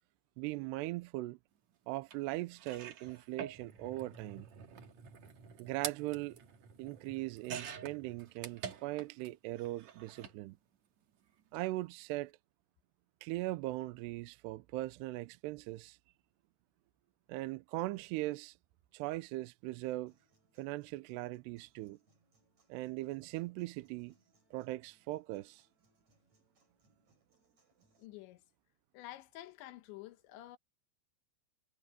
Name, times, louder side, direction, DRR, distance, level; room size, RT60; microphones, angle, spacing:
voice 1, 0.4-1.4 1.9-4.5 5.6-6.4 6.8-10.6 11.5-12.3 13.2-16.0 17.3-18.6 18.9-20.1 20.6-22.0 22.7-24.1 24.5-25.7, right 18 dB, 80° right, 2.6 m, -39 dB
sound 1, 2.1-2.2 2.6-9.3 9.6-10.4 11.4-11.6 11.8-11.9, right 7 dB, 55° right, 2.3 m, -47 dB
Human voice / Acoustic guitar, 20.1-28.1, right 2 dB, 40° right, 7.4 m, -75 dB
voice 2, 28.0-28.4 28.9-30.6, left 15 dB, 85° left, 3.3 m, -50 dB
omnidirectional pair, 5.1 m